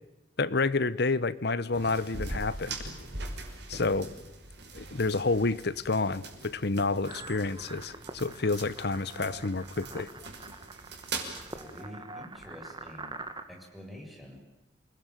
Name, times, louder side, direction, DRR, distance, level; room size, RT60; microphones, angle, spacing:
voice 1, 0.4-2.8 3.7-4.1 4.7-10.1, left 3 dB, 65° left, 17 dB, 1.0 m, -29 dB
sound 1, 1.7-11.8, right 3 dB, 65° right, 5.7 m, -42 dB
sound 2, 7.1-13.4, right 3 dB, 25° right, 2.1 m, -45 dB
voice 2, 11.5-13.2 13.5-14.4, equal, ahead, 0 dB, 7.0 m, -47 dB
28.5 x 20.5 x 9.1 m, 0.98 s
head